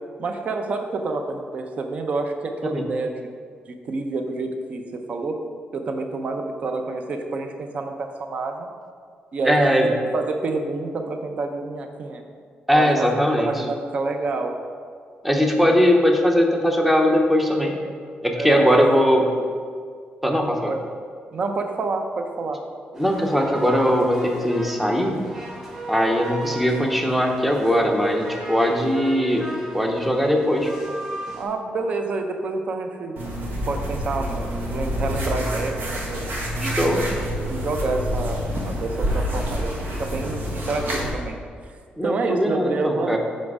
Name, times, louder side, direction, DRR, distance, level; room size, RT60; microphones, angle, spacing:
voice 1, 0.2-3.3 3.7-5.4 5.7-8.7 9.3-12.2 12.7-13.1 13.4-14.5 15.6-15.7 18.4-18.9 20.7-20.8 21.3-22.6 31.3-33.3 33.7-37.0 37.5-39.7 40.0-41.4 42.0-43.2, right 3 dB, 40° right, 5 dB, 0.6 m, -28 dB
voice 2, 9.5-9.9 12.7-13.6 15.2-17.7 18.2-19.2 20.2-20.7 23.0-25.2 25.9-29.5 29.7-30.7 36.6-37.0 42.0-43.2, equal, 5° right, 2 dB, 0.7 m, -20 dB
sound 1, 22.9-31.4, right 1 dB, 20° right, 1.3 m, -36 dB
sound 2, 33.2-41.1, equal, 80° right, 1.5 m, -27 dB
7.5 x 5.1 x 4.8 m, 2.1 s
wide cardioid pair, 175°, 3 cm